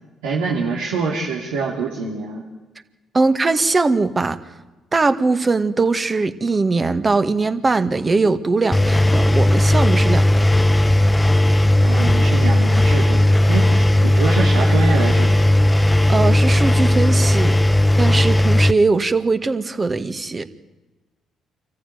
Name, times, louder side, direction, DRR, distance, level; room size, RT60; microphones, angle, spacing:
voice 1, 0.2-2.4 11.8-13.2 13.5-15.4, right 4 dB, 85° right, -3 dB, 3.0 m, -25 dB
voice 2, 3.1-4.4 4.9-10.7 16.1-17.6 18.0-20.4, right 3 dB, 30° right, 10 dB, 1.9 m, -20 dB
Engine, 8.7-18.7, left 1 dB, 15° left, 1.1 m, -15 dB
26.0 x 14.5 x 9.4 m, 1.2 s
hypercardioid pair, 55°, 0 cm